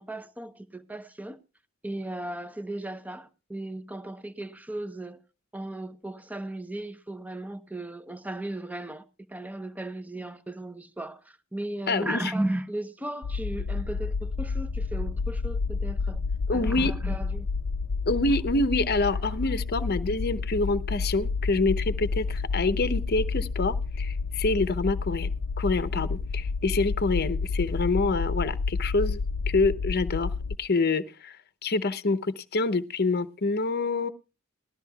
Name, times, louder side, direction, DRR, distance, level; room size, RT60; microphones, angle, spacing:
voice 1, 0.0-1.4 1.8-5.2 5.5-9.0 9.3-16.2 16.5-17.5, right 1 dB, 10° right, 0.8 m, -36 dB
voice 2, 11.9-12.3 16.5-16.9 18.1-25.3 25.6-29.2 29.5-30.3 30.6-31.4 31.6-34.1, left 3 dB, 50° left, 0.8 m, -26 dB
sound 1, 13.2-30.6, left 4 dB, 80° left, 0.5 m, -30 dB
19.5 x 13.0 x 2.3 m
head